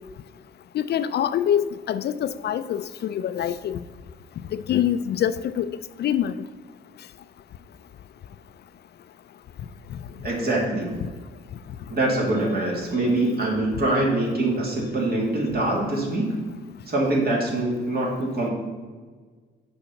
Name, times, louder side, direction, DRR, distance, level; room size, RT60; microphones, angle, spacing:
voice 1, 0.7-3.8 4.5-5.7 6.0-6.4, left 10 dB, 55° left, 13 dB, 0.4 m, -25 dB
voice 2, 10.2-10.9 11.9-16.3 16.9-18.5, right 2 dB, 50° right, -2 dB, 2.5 m, -24 dB
7.0 x 5.4 x 5.7 m, 1.5 s
cardioid pair, 90°, 20 cm